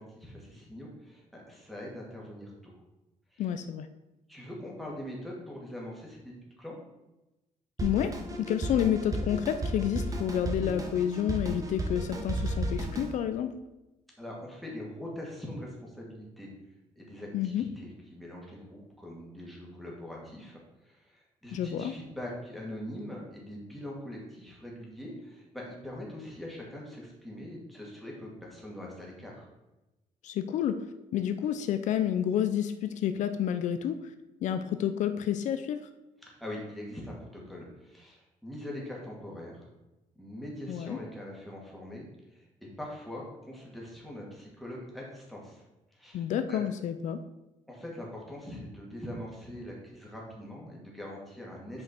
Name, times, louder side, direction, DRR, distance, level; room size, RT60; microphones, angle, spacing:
voice 1, 0.0-2.7 3.3-3.5 4.3-6.8 14.2-16.5 17.0-29.5 36.2-39.7 40.2-42.0 42.3-42.4 42.8-45.6 45.9-46.6 47.7-51.8, left 1 dB, ahead, -4 dB, 2.3 m, -42 dB
voice 2, 3.4-3.9 7.8-8.1 8.4-13.5 17.3-17.7 21.5-22.0 30.2-30.8 31.1-34.0 34.4-35.9 40.7-41.0 46.1-47.2, left 9 dB, 70° left, 10 dB, 0.5 m, -29 dB
Drum kit, 7.8-13.1, right 1 dB, 25° right, 1.1 m, -33 dB
8.3 x 5.1 x 4.4 m, 1.0 s
cardioid pair, 145°, 13 cm